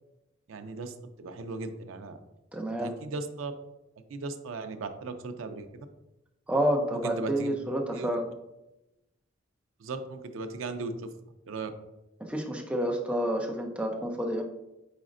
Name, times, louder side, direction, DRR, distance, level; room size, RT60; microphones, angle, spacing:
voice 1, 0.5-2.2 2.7-3.5 4.1-5.9 6.9-7.5 7.9-8.2 9.8-11.1 11.4-11.7, right 3 dB, 90° right, 8 dB, 0.5 m, -37 dB
voice 2, 2.5-2.9 6.5-8.3 12.2-14.4, right 1 dB, 5° right, 1 dB, 0.5 m, -29 dB
5.1 x 4.1 x 2.5 m, 0.95 s
head